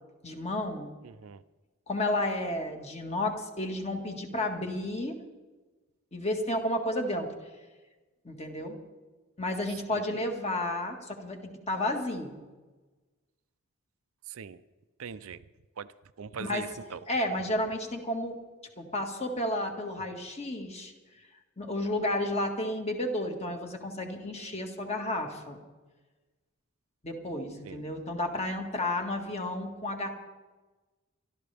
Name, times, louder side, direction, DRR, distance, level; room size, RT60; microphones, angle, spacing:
voice 1, 0.2-0.9 1.9-5.2 6.1-7.3 8.2-8.8 9.4-12.4 16.4-16.7 17.1-18.4 18.8-20.9 21.6-25.6 27.0-30.1, left 1 dB, 30° left, 3 dB, 1.8 m, -32 dB
voice 2, 1.0-1.4 14.3-14.6 15.0-15.4 15.8-15.9 16.2-17.0 27.7-27.8, right 6 dB, 70° right, 13 dB, 0.5 m, -40 dB
25.0 x 12.5 x 3.4 m, 1.2 s
head